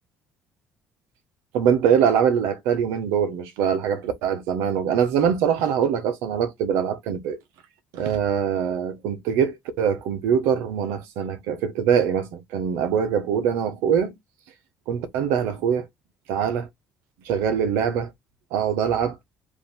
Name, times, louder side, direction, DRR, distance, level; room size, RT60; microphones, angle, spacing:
voice 1, 1.5-7.4 7.9-14.2 14.9-15.9 16.3-16.7 17.2-18.1 18.5-19.2, right 8 dB, 85° right, 1.1 m, -23 dB
5.1 x 2.8 x 3.4 m
supercardioid pair, 85°, 4 cm